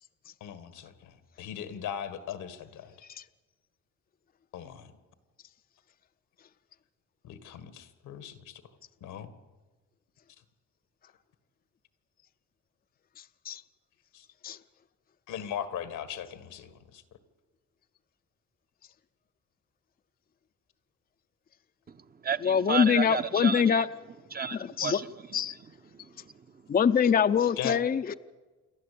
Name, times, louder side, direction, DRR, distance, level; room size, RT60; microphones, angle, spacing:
voice 1, 0.4-2.9 4.5-4.9 7.2-8.6 9.0-9.3 14.1-14.3 15.3-17.0 27.6-27.8, left 9 dB, 90° left, 11 dB, 1.8 m, -39 dB
voice 2, 13.2-13.6 14.4-14.6 22.4-23.9 24.5-25.0 25.3-25.6 26.7-28.1, left 7 dB, 30° left, 10 dB, 0.6 m, -24 dB
voice 3, 21.9-23.9 24.3-25.4 25.9-26.3, right 6 dB, 30° right, 10 dB, 0.9 m, -33 dB
28.0 x 11.5 x 8.5 m, 1.3 s
cardioid pair, 90°, 30 cm